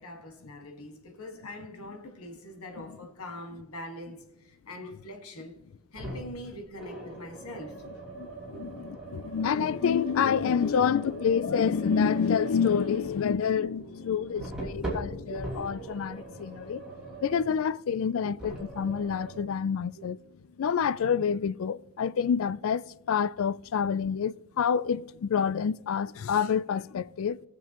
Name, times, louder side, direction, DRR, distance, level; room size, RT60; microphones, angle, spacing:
voice 1, 0.0-5.6 5.9-7.8 8.5-8.7 13.8-15.0 15.3-15.4 18.2-18.3 19.9-20.1, equal, 85° left, 1.8 m, -43 dB
sound 1, 6.0-6.4 6.8-17.5 18.4-19.4, right 2 dB, 5° right, 3.1 m, -41 dB
voice 2, 8.6-16.8 17.2-20.2 20.6-27.4, left 7 dB, 70° left, 0.3 m, -28 dB
19.5 x 6.9 x 3.0 m
head